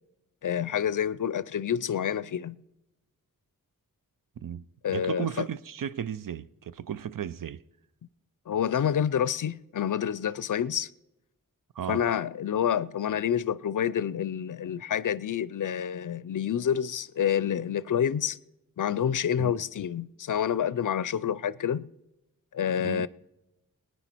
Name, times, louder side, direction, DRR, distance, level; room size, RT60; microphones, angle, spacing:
voice 1, 0.4-2.6 4.8-5.5 8.5-10.9 11.9-18.4 18.8-21.9 22.5-23.1, left 9 dB, 60° left, 0.5 m, -28 dB
voice 2, 4.9-7.6 11.8-12.0 19.4-19.5 22.8-23.1, right 9 dB, 70° right, 0.5 m, -35 dB
20.0 x 9.7 x 4.5 m
wide cardioid pair, 60°, 35 cm